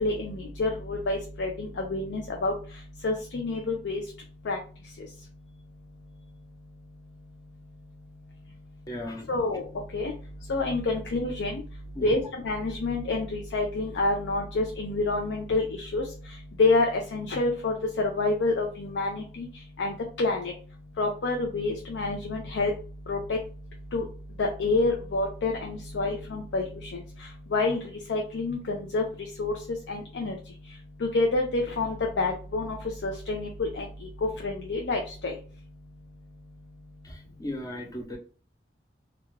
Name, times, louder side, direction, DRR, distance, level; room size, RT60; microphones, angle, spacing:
voice 1, 0.0-2.5 3.0-4.0 4.5-4.6 9.3-9.6 9.9-10.1 10.5-11.6 12.0-16.0 16.6-19.5 19.8-20.5 21.0-22.7 23.1-23.4 23.9-24.0 24.4-26.6 27.5-27.8 28.1-29.0 29.4-29.5 29.9-30.3 31.1-32.8 33.0-33.9 34.4-35.3, left 3 dB, 85° left, 1 dB, 0.4 m, -27 dB
voice 2, 8.9-9.4 11.9-12.2 37.0-38.2, left 1 dB, 20° left, 0 dB, 0.6 m, -37 dB
2.3 x 2.3 x 3.1 m, 0.40 s
head